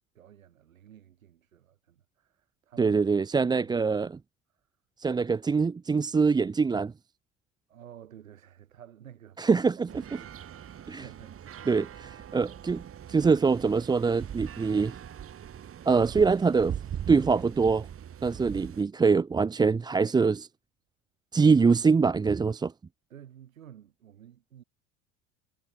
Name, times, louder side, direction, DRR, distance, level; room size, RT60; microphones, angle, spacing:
voice 1, 0.0-4.0 4.5-4.7 7.7-11.4 18.2-18.5 23.1-24.6, right 10 dB, 75° right, 7.6 m, -53 dB
voice 2, 2.8-4.2 5.0-6.9 9.4-9.9 10.9-11.0 11.7-12.8 13.1-15.0 15.9-16.8 17.1-17.9 18.2-20.5 21.3-22.7, right 5 dB, 10° right, 0.5 m, -24 dB
sound 1, 9.9-18.8, right 9 dB, 35° right, 2.4 m, -41 dB
figure-of-eight pair, 65°, 41 cm